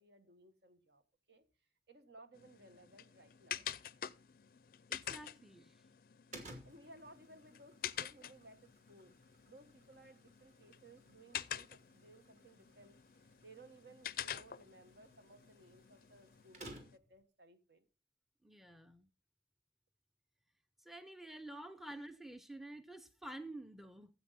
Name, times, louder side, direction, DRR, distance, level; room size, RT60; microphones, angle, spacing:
voice 1, 0.0-1.4 1.9-3.7 5.6-5.8 6.6-9.1 9.5-17.8, right 2 dB, 65° right, 1.5 m, -60 dB
sound 1, 2.3-17.0, left 10 dB, 55° left, 0.4 m, -48 dB
voice 2, 4.9-5.7 18.4-19.1 20.8-24.1, right 1 dB, ahead, 0.6 m, -50 dB
sound 2, 6.3-17.2, right 1 dB, 40° right, 2.4 m, -58 dB
13.0 x 7.9 x 4.1 m
head